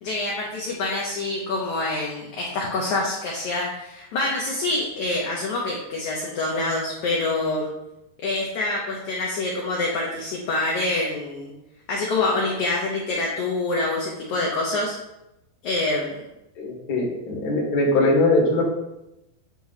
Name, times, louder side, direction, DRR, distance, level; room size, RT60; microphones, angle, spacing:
voice 1, 0.0-7.7 8.2-11.5 11.9-15.0 15.6-16.2, left 2 dB, 80° left, -2 dB, 1.7 m, -26 dB
voice 2, 16.5-18.7, left 2 dB, 45° left, -3 dB, 1.2 m, -21 dB
8.7 x 3.0 x 5.6 m, 0.91 s
omnidirectional pair, 4.7 m